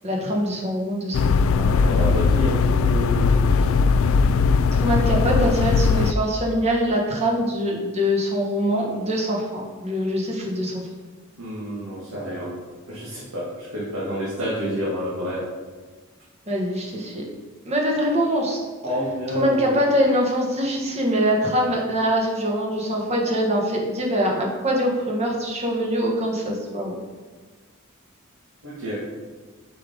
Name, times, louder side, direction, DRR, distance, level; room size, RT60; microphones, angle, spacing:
voice 1, 0.0-1.2 1.6-1.8 4.7-10.9 16.5-17.3 17.7-18.6 19.3-27.0, equal, 30° right, -1 dB, 1.3 m, -23 dB
sound 1, 1.1-6.1, left 5 dB, 70° left, 0.3 m, -19 dB
voice 2, 1.6-3.8 11.4-12.5 12.9-15.4 18.8-19.7 28.6-29.0, equal, 85° right, -8 dB, 1.8 m, -29 dB
5.7 x 5.0 x 5.3 m, 1.4 s
head